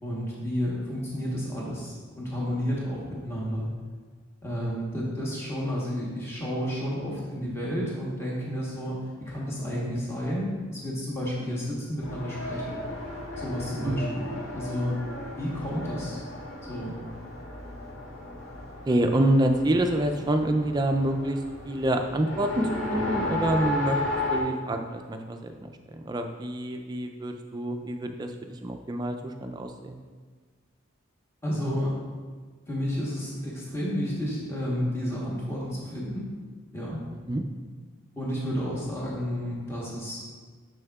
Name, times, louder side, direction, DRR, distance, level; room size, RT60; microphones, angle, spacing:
voice 1, 0.0-3.7 4.4-12.8 13.4-14.3 14.5-15.0 15.3-16.2 16.7-17.0 31.4-32.0 32.7-36.3 36.7-37.0 38.2-40.2, equal, 15° left, -6 dB, 1.0 m, -31 dB
Race car auto racing, 12.0-24.4, left 2 dB, 75° left, 0.9 m, -34 dB
voice 2, 18.9-21.4 21.6-24.0 24.3-30.0 37.3-37.4, right 1 dB, 20° right, 5 dB, 0.3 m, -27 dB
6.4 x 6.3 x 2.3 m, 1.5 s
head